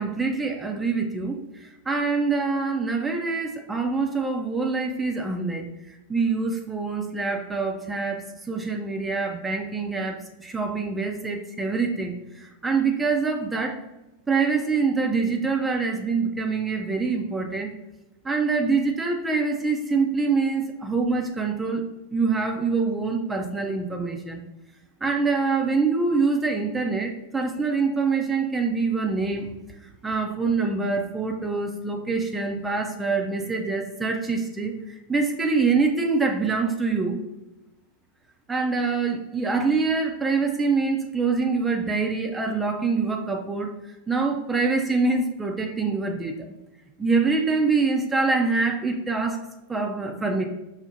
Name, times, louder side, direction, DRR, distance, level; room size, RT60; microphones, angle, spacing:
voice 1, 0.0-5.7 6.1-13.8 14.3-17.7 18.2-21.8 22.1-24.4 25.0-29.5 30.0-37.2 38.5-43.7 44.1-46.4 47.0-50.4, right 4 dB, 10° right, 2 dB, 0.4 m, -25 dB
5.3 x 2.1 x 2.7 m, 0.95 s
figure-of-eight pair, 90°, 0 cm